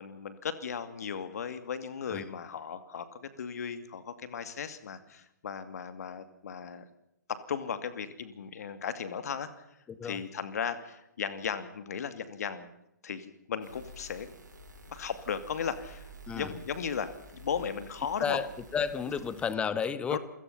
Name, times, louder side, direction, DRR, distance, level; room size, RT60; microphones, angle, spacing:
voice 1, 0.0-6.8 7.3-9.6 10.0-12.7 13.0-14.3 14.9-16.1 16.3-18.4 20.1-20.2, left 7 dB, 55° left, 11 dB, 2.5 m, -36 dB
voice 2, 9.9-10.2 16.3-16.5 18.2-18.5 18.7-20.2, left 6 dB, 10° left, 15 dB, 1.3 m, -32 dB
sound 1, 13.6-19.5, right 1 dB, 75° right, 6.5 m, -50 dB
28.5 x 17.5 x 5.7 m, 0.81 s
figure-of-eight pair, 130°, 10 cm